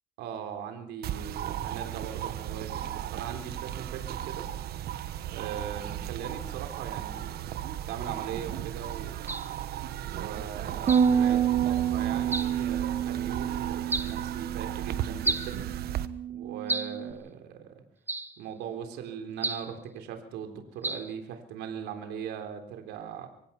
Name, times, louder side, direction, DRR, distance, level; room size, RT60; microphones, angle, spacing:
voice 1, 0.2-4.5 5.3-9.2 10.1-15.7 16.3-17.7 18.4-23.3, right 8 dB, 85° right, 6 dB, 3.8 m, -40 dB
sound 1, 1.0-16.1, right 11 dB, 65° right, 1.3 m, -36 dB
sound 2, 9.3-9.5 10.9-11.1 12.3-12.6 13.9-14.2 15.2-15.6 16.7-17.0 18.1-18.4 19.4-19.7 20.8-21.1, right 2 dB, 10° right, 1.3 m, -32 dB
Bass guitar, 10.9-17.1, right 8 dB, 40° right, 1.5 m, -28 dB
24.5 x 17.5 x 5.9 m, 0.68 s
cardioid pair, 110°, 17 cm